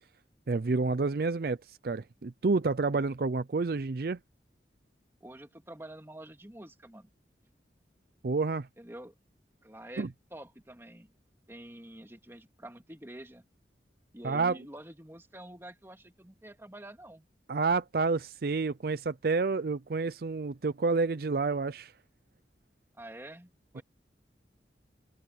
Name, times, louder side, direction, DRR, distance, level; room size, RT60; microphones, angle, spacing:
voice 1, 0.5-4.2 8.2-8.7 10.0-10.1 14.2-14.6 17.5-21.9 23.8-23.9, right 4 dB, 55° right, 0.5 m, -29 dB
voice 2, 5.2-7.1 8.8-9.1 9.6-11.1 11.5-13.5 14.1-17.2 23.0-23.8, right 1 dB, 15° right, 2.3 m, -47 dB
head